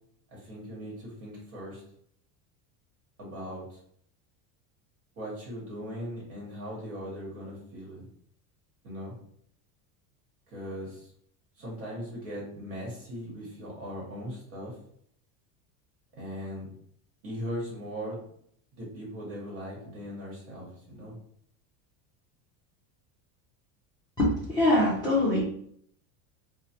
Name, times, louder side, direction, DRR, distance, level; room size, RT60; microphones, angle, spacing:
voice 1, 0.3-1.8 3.2-3.8 5.2-8.1 8.8-9.1 10.5-11.1 11.6-14.8 16.2-16.7 17.2-18.2 18.8-21.2, equal, 60° right, -5 dB, 1.1 m, -39 dB
voice 2, 24.2-25.4, left 1 dB, 10° left, -10 dB, 0.4 m, -23 dB
3.0 x 2.0 x 2.8 m, 0.67 s
cardioid pair, 160°, 42 cm